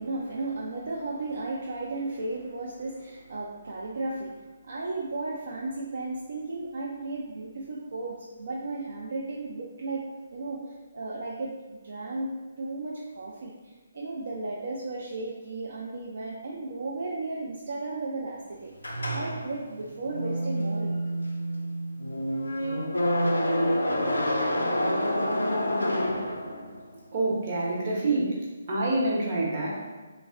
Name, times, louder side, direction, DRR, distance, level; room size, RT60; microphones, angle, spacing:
voice 1, 0.0-21.0, right 2 dB, 65° right, -3 dB, 0.3 m, -35 dB
sound 1, 18.8-26.9, equal, 90° left, 0.4 m, -28 dB
voice 2, 27.1-28.3 28.7-29.8, right 2 dB, 40° right, -5 dB, 0.8 m, -26 dB
3.3 x 2.0 x 2.4 m, 1.3 s
figure-of-eight pair, 145°, 0 cm